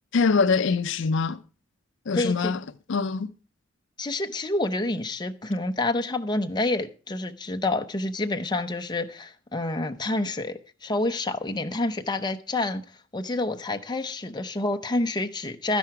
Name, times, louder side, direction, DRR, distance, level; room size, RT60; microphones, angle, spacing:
voice 1, 0.1-1.4 2.1-2.6 2.9-3.3, left 4 dB, 65° left, 0.5 m, -23 dB
voice 2, 2.1-2.5 4.0-12.8 13.1-15.8, left 2 dB, 20° left, 0.8 m, -28 dB
12.5 x 10.5 x 4.8 m
head